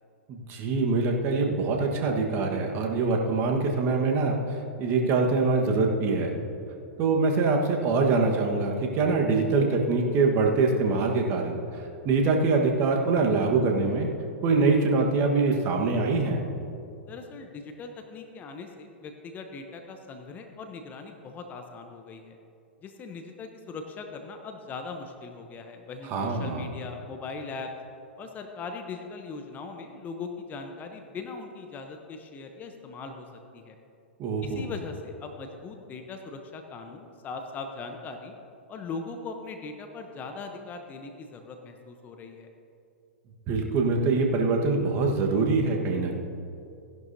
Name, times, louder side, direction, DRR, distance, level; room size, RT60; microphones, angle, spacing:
voice 1, 0.3-6.3 7.0-14.1 14.4-16.4 26.1-26.6 34.2-34.7 43.5-46.2, right 3 dB, 35° right, 1 dB, 1.5 m, -24 dB
voice 2, 17.1-22.4 22.8-27.7 28.2-33.3 33.5-33.8 34.4-38.3 38.7-42.5, left 4 dB, 25° left, 5 dB, 0.9 m, -40 dB
15.5 x 11.0 x 2.8 m, 2.6 s
figure-of-eight pair, 105°, 7 cm